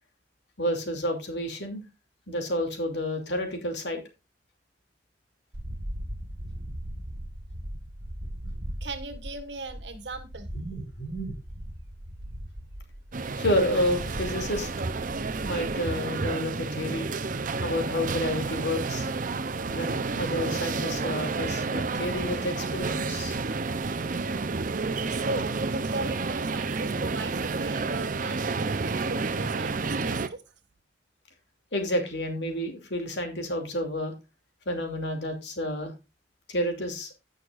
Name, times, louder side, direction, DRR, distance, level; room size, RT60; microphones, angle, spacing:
voice 1, 0.6-1.8 2.3-4.0 10.5-11.4 13.4-14.7 15.4-17.1 17.6-19.1 19.7-23.4 31.7-34.1 34.7-35.9 36.5-37.1, left 1 dB, 75° left, 2.8 m, -30 dB
sound 1, 5.5-15.8, equal, 70° right, 1.6 m, -39 dB
voice 2, 8.8-10.5 23.7-24.3 25.1-30.5, right 2 dB, 85° right, 1.7 m, -38 dB
sound 2, 13.1-30.3, right 4 dB, 50° right, 0.7 m, -30 dB
16.0 x 6.5 x 2.5 m
head